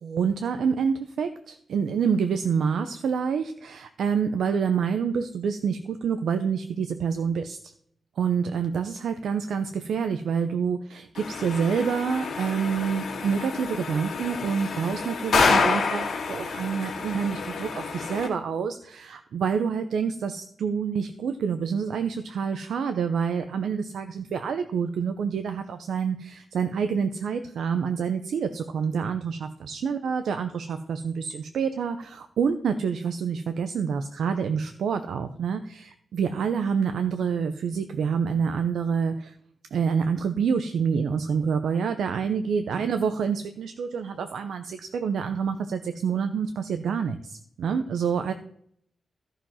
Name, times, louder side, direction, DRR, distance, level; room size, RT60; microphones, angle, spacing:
voice 1, 0.0-7.7 8.2-39.3 39.7-48.3, right 6 dB, 80° right, 8 dB, 0.7 m, -27 dB
sound 1, 11.2-18.3, left 4 dB, 65° left, 2.3 m, -28 dB
14.0 x 5.1 x 5.7 m, 0.68 s
wide cardioid pair, 170°, 0 cm